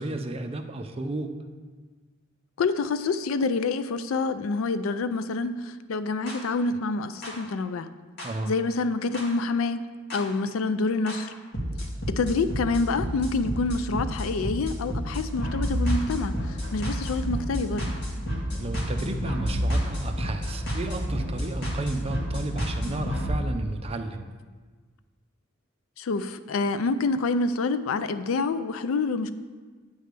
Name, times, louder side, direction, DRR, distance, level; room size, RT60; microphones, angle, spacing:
voice 1, 0.0-1.3 8.2-8.5 18.5-24.3, right 2 dB, 30° right, 6 dB, 0.5 m, -32 dB
voice 2, 2.6-7.9 8.5-9.9 10.1-11.3 12.1-17.9 26.0-29.3, left 3 dB, 85° left, 12 dB, 0.4 m, -27 dB
sound 1, 6.3-6.4 7.2-7.3 8.2-8.3 9.1-9.2 10.1-10.2 11.1-11.2 11.5-23.3, equal, 55° left, 1.9 m, -29 dB
8.9 x 3.3 x 6.7 m, 1.4 s
head